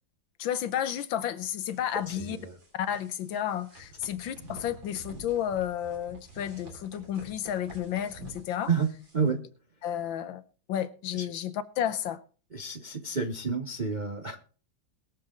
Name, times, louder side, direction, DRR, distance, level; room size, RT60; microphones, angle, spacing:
voice 1, 0.4-2.4 2.7-8.7 9.8-10.4 10.7-12.2, left 10 dB, 80° left, 1.6 m, -32 dB
sound 1, 1.6-9.3, right 2 dB, 70° right, 4.7 m, -49 dB
voice 2, 12.5-14.4, right 5 dB, 45° right, 0.5 m, -29 dB
21.0 x 7.2 x 3.7 m
omnidirectional pair, 2.2 m